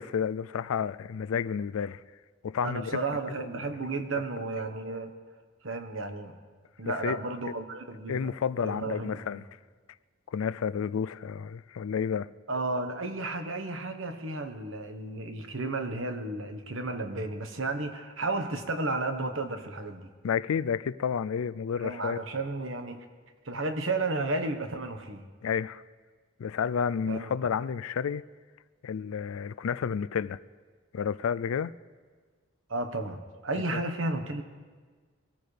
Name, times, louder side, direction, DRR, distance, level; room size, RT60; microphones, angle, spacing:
voice 1, 0.0-2.0 2.4-3.0 6.9-7.2 8.1-9.5 10.3-12.3 20.2-22.2 25.4-25.8 26.4-28.2 28.8-30.4 30.9-31.7 33.7-33.8, left 7 dB, 80° left, 0.4 m, -30 dB
voice 2, 2.6-5.1 5.6-6.3 6.8-8.3 8.6-9.2 12.5-20.1 21.8-23.0 23.4-25.2 27.1-27.4 32.7-34.4, right 2 dB, 65° right, 1.2 m, -33 dB
23.0 x 14.5 x 3.4 m
head